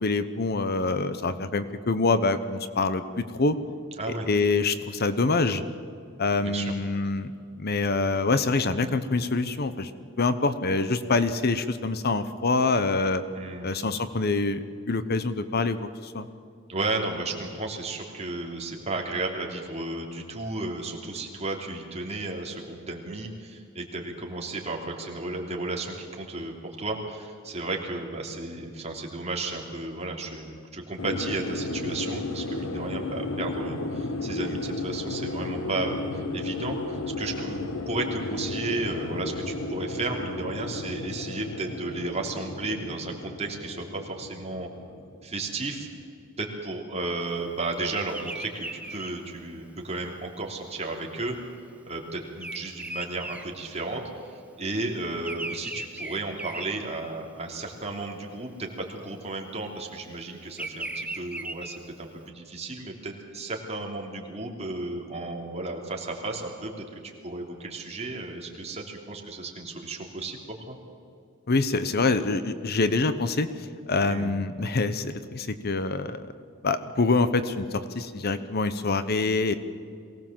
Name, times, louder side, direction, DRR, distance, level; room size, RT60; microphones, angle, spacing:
voice 1, 0.0-3.6 4.3-5.6 6.2-7.3 7.6-9.9 10.2-13.2 13.6-16.3 71.5-73.5 73.9-76.2 76.6-79.5, left 3 dB, 50° left, 12 dB, 0.9 m, -25 dB
voice 2, 13.3-13.7 16.7-44.7 45.2-45.9 46.4-51.4 51.9-54.0 54.3-66.7 67.0-70.8 74.0-74.4, right 2 dB, 30° right, 1 dB, 3.1 m, -33 dB
sound 1, 31.0-45.8, left 2 dB, 85° left, 1.5 m, -34 dB
Bird vocalization bird call bird song, 47.9-54.3 54.6-57.4 57.9-58.3 59.2-62.2, right 2 dB, 5° right, 1.1 m, -38 dB
23.0 x 17.5 x 7.5 m, 2.4 s
head